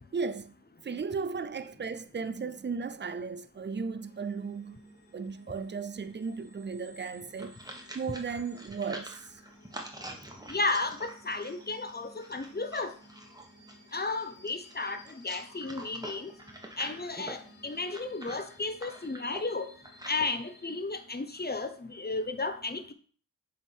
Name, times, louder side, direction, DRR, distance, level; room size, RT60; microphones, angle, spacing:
voice 1, 0.1-0.5 0.8-4.8 5.1-7.6 7.9-9.4, right 5 dB, 30° right, 0.5 m, -35 dB
sound 1, 4.0-20.8, equal, 70° left, 2.1 m, -57 dB
sound 2, 7.1-20.3, right 1 dB, 10° right, 1.3 m, -46 dB
voice 2, 10.5-12.9 13.9-16.3 16.8-19.7 20.1-22.9, left 3 dB, 25° left, 0.9 m, -33 dB
7.1 x 3.7 x 4.5 m
cardioid pair, 50°, 35 cm